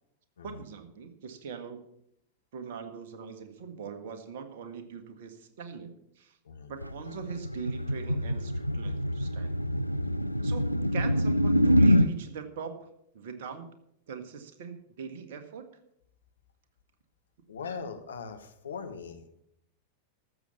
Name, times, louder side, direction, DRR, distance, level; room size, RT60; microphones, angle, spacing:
voice 1, 0.4-1.8 2.5-6.4 6.7-9.5 10.4-12.9 13.1-13.7 14.1-15.6, right 6 dB, 55° right, 8 dB, 1.6 m, -41 dB
sound 1, 6.8-12.1, equal, 90° left, 0.4 m, -25 dB
voice 2, 17.5-19.4, left 5 dB, 70° left, 7 dB, 1.4 m, -40 dB
13.5 x 7.2 x 6.9 m, 0.75 s
figure-of-eight pair, 90°, 0 cm